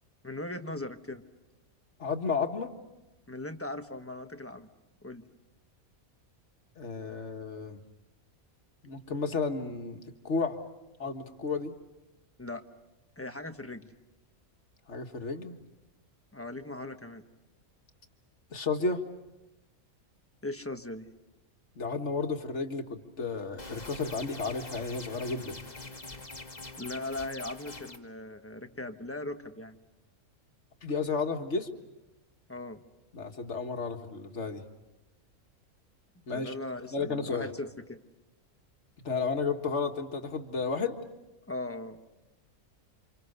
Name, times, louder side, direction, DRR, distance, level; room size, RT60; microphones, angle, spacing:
voice 1, 0.2-1.2 3.3-4.7 5.0-5.2 12.4-12.6 13.2-13.9 16.3-17.2 20.4-21.1 26.8-29.8 32.5-32.8 36.3-38.0 41.5-42.0, left 2 dB, 10° left, 7 dB, 1.1 m, -39 dB
voice 2, 2.0-2.7 6.8-7.8 8.8-10.6 11.0-11.7 14.9-15.5 18.5-19.0 21.8-25.6 30.8-31.7 33.1-34.6 36.3-36.5 36.9-37.5 39.0-41.0, left 4 dB, 55° left, 5 dB, 2.1 m, -32 dB
sound 1, 23.6-28.0, left 3 dB, 30° left, 1.9 m, -44 dB
29.0 x 27.0 x 6.8 m, 1.0 s
omnidirectional pair, 1.5 m